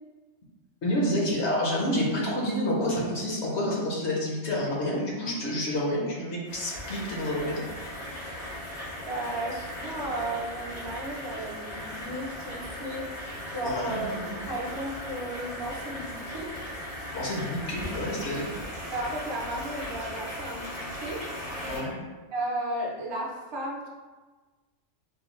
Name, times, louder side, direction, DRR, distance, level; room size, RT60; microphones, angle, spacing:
voice 1, 0.8-7.7 13.6-14.4 17.1-18.5 21.6-21.9, left 1 dB, 60° left, -3 dB, 1.1 m, -29 dB
sound 1, 6.5-21.8, equal, 90° left, 2.1 m, -38 dB
voice 2, 9.0-13.1 13.5-14.1 14.5-16.5 18.9-21.2 22.3-23.9, right 1 dB, 30° right, -3 dB, 0.5 m, -34 dB
4.6 x 2.3 x 3.1 m, 1.3 s
omnidirectional pair, 1.3 m